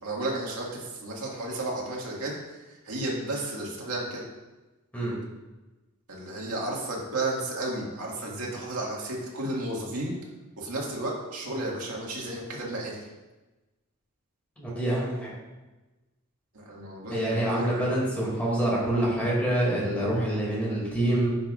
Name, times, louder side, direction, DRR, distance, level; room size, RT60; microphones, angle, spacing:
voice 1, 0.0-4.2 6.1-10.1 10.6-13.1 16.5-18.0, right 2 dB, 85° right, -3 dB, 1.9 m, -33 dB
voice 2, 14.6-15.3 17.1-21.3, right 1 dB, 5° left, -6 dB, 2.4 m, -26 dB
10.0 x 5.7 x 2.4 m, 1.1 s
head